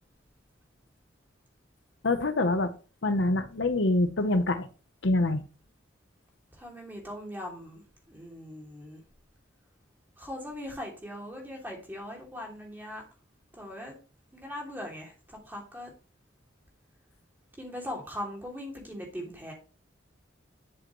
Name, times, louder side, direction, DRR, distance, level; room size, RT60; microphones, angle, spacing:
voice 1, 2.0-2.7 3.0-4.7 5.0-5.4, left 2 dB, 70° left, 0.9 m, -25 dB
voice 2, 6.5-7.8 8.1-9.0 10.2-13.0 13.5-14.0 14.3-15.9 17.6-19.5, left 1 dB, 10° right, 2.8 m, -40 dB
10.5 x 7.7 x 3.2 m
head